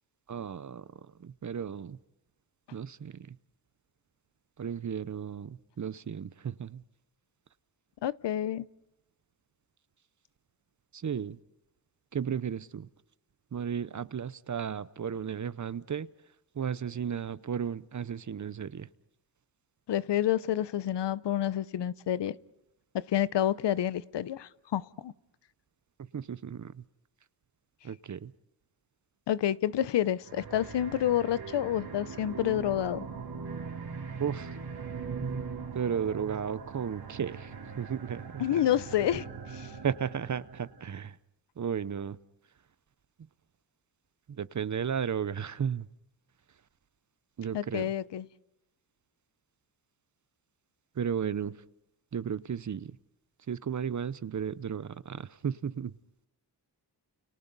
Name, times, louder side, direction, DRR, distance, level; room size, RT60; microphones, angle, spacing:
voice 1, 0.3-0.8 1.2-2.0 2.7-3.4 4.6-6.8 10.9-11.4 12.1-12.9 13.5-16.1 16.6-18.9 26.0-26.8 27.8-28.3 34.2-34.5 35.7-38.6 39.8-41.2 41.6-42.2 44.4-45.9 47.4-47.9 51.0-51.6 52.1-53.0 53.5-55.9, right 7 dB, 45° right, 17 dB, 0.8 m, -34 dB
voice 2, 8.0-8.6 19.9-22.3 22.9-25.1 29.3-33.0 38.4-39.3 39.5-39.7 47.5-48.3, left 11 dB, 85° left, 17 dB, 0.8 m, -29 dB
sound 1, 30.2-40.8, right 5 dB, 65° right, 3.5 m, -41 dB
30.0 x 29.5 x 4.1 m, 0.85 s
cardioid pair, 70°, 41 cm